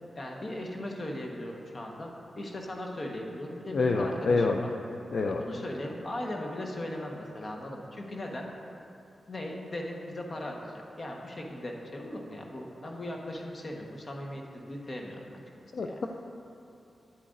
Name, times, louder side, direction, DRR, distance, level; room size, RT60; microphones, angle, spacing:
voice 1, 0.1-2.1 2.3-4.7 5.3-8.5 9.3-15.4 15.8-16.0, left 1 dB, 50° left, 0 dB, 1.2 m, -38 dB
voice 2, 3.7-4.6 5.1-5.4 15.7-16.1, left 3 dB, 70° left, 2 dB, 0.4 m, -26 dB
10.0 x 8.6 x 2.6 m, 2.7 s
cardioid pair, 45°, 0 cm